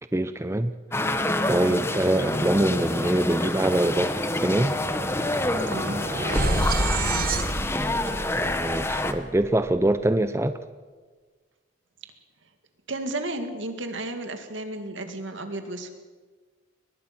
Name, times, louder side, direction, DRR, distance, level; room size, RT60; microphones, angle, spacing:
voice 1, 0.1-0.7 1.5-4.7 8.4-10.6, right 1 dB, 15° right, 11 dB, 0.5 m, -24 dB
sound 1, 0.9-9.1, left 1 dB, 15° left, 1.0 m, -27 dB
Bass guitar, 2.2-5.7, equal, 90° left, 7.6 m, -41 dB
sound 2, 3.7-9.9, right 2 dB, 50° right, 1.6 m, -30 dB
voice 2, 5.7-6.1 6.9-7.4 12.9-15.9, right 2 dB, 75° right, 7 dB, 2.3 m, -33 dB
23.0 x 20.0 x 6.1 m, 1.4 s
head